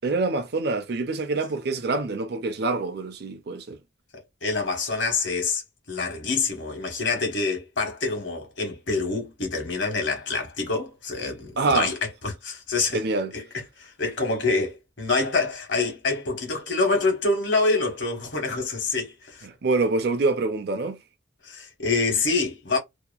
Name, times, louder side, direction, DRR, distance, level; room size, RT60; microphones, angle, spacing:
voice 1, 0.0-3.8 11.6-11.9 12.9-13.3 19.4-21.0, right 3 dB, 55° right, 0.5 m, -25 dB
voice 2, 4.4-5.6 5.9-12.0 12.2-13.0 13.3-13.4 13.8-19.4 21.4-22.8, left 3 dB, 70° left, 1.2 m, -26 dB
2.8 x 2.2 x 2.3 m
head